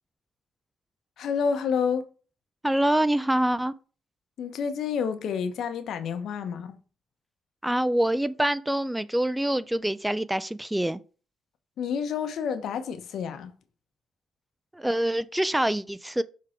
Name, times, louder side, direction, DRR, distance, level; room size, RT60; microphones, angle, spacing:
voice 1, 1.2-2.1 4.4-6.8 11.8-13.5, left 6 dB, 70° left, 1.0 m, -29 dB
voice 2, 2.6-3.7 7.6-11.0 14.7-16.2, right 1 dB, 5° right, 0.3 m, -25 dB
6.5 x 3.7 x 4.4 m
cardioid pair, 90°, 0 cm